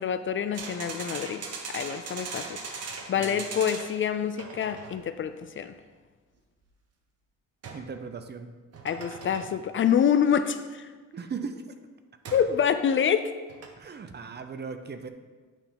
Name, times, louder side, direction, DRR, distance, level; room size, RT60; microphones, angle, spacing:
voice 1, 0.0-5.7 8.8-10.9 12.3-13.4, left 8 dB, 40° left, 11 dB, 0.4 m, -27 dB
sound 1, 0.5-4.0 4.4-5.0 7.6-7.9 8.7-9.6 12.2-12.5 13.5-13.7, right 4 dB, 55° right, 1.1 m, -39 dB
voice 2, 7.7-8.5 11.1-11.6 13.8-15.1, right 5 dB, 35° right, 8 dB, 0.7 m, -38 dB
9.0 x 3.5 x 5.7 m, 1.4 s
cardioid pair, 90°, 30 cm